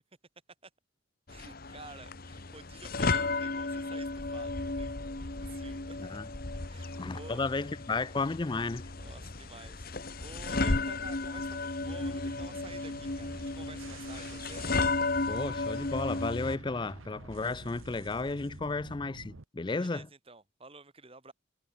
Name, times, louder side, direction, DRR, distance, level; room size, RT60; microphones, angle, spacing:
sound 1, 1.3-16.6, left 3 dB, 45° left, 1.3 m, -34 dB
voice 1, 1.3-6.2 6.6-7.4 9.0-14.6 19.8-21.3, right 3 dB, 30° right, 3.0 m, -51 dB
voice 2, 6.0-6.3 6.9-8.8 15.3-20.1, left 3 dB, 20° left, 0.4 m, -33 dB
sound 2, 11.8-19.4, right 3 dB, 80° right, 1.2 m, -48 dB
head